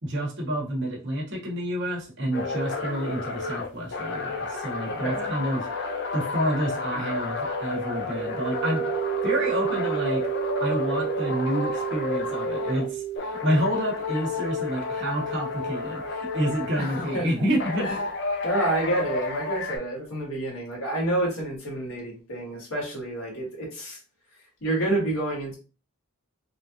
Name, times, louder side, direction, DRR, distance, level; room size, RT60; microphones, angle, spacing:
voice 1, 0.0-8.8 9.2-10.2 10.6-17.9, equal, 60° right, -1 dB, 1.2 m, -29 dB
sound 1, 2.3-12.9 13.2-17.2 17.6-19.8, left 3 dB, 55° left, 0.6 m, -31 dB
voice 2, 4.8-5.3 16.8-17.4 17.8-18.0 18.4-24.0 24.6-25.5, right 2 dB, 85° left, -2 dB, 1.7 m, -29 dB
sound 2, 8.2-13.2, right 13 dB, 20° left, 0.8 m, -31 dB
3.5 x 2.6 x 2.8 m, 0.33 s
head